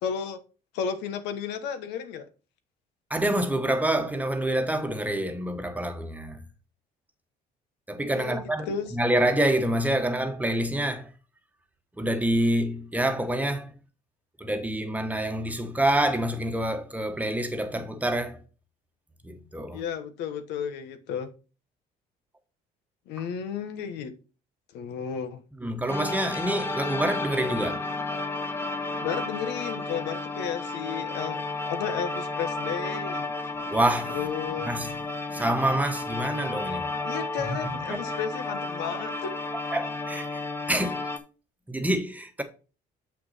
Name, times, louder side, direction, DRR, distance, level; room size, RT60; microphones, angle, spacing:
voice 1, 0.0-0.4 0.7-2.3 8.1-8.9 19.7-21.3 23.1-24.1 24.7-25.4 29.0-33.3 34.1-34.7 37.0-39.3, left 7 dB, 90° left, 1.2 m, -33 dB
voice 2, 3.1-6.4 7.9-11.1 12.0-13.7 14.4-18.4 19.2-19.8 25.6-27.8 33.7-34.3 34.6-34.9 35.3-36.9 37.7-38.0 39.7-40.4 40.7-41.1 41.7-42.4, right 1 dB, 10° right, 1.2 m, -27 dB
sound 1, 25.9-41.2, left 3 dB, 15° left, 1.0 m, -32 dB
7.0 x 6.0 x 4.2 m
cardioid pair, 110°, 17 cm